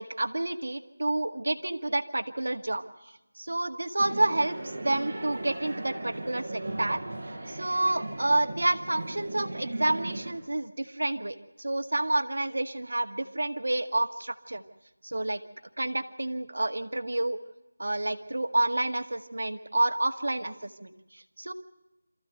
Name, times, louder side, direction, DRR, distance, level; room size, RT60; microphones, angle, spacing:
voice 1, 0.0-7.0 7.5-14.6 15.0-15.4 15.8-17.4 17.8-21.5, right 2 dB, 85° right, 8 dB, 1.8 m, -29 dB
sound 1, 4.0-10.3, right 2 dB, 35° right, 4.6 m, -37 dB
27.0 x 14.5 x 7.9 m, 0.99 s
figure-of-eight pair, 175°, 0 cm